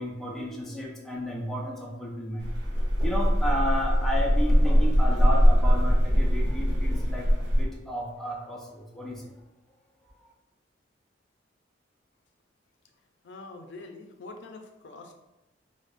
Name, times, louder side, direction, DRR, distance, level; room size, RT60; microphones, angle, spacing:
voice 1, 0.0-2.5 3.0-9.3 10.2-10.3, equal, ahead, -3 dB, 0.5 m, -33 dB
sound 1, 2.4-7.6, equal, 70° right, 0.9 m, -22 dB
voice 2, 13.2-15.1, left 3 dB, 70° left, 4 dB, 0.4 m, -44 dB
5.0 x 2.0 x 2.4 m, 0.96 s
head